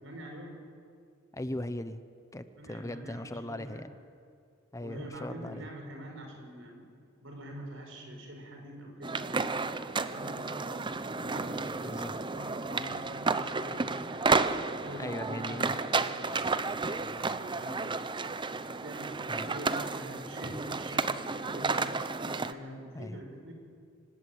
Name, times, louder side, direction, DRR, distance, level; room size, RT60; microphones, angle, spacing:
voice 1, 0.0-0.6 2.5-3.8 4.8-6.9 7.2-9.6 10.0-11.7 12.2-14.3 14.8-17.9 18.6-21.9 22.2-23.5, equal, 70° right, 3 dB, 5.6 m, -45 dB
voice 2, 1.3-2.0 2.3-3.9 4.7-5.6 11.8-12.2 14.9-15.7 19.3-19.6 22.9-23.2, left 1 dB, 15° left, 11 dB, 0.8 m, -39 dB
sound 1, 9.0-22.5, right 3 dB, 25° right, 0.7 m, -32 dB
26.5 x 17.0 x 9.5 m, 2.3 s
head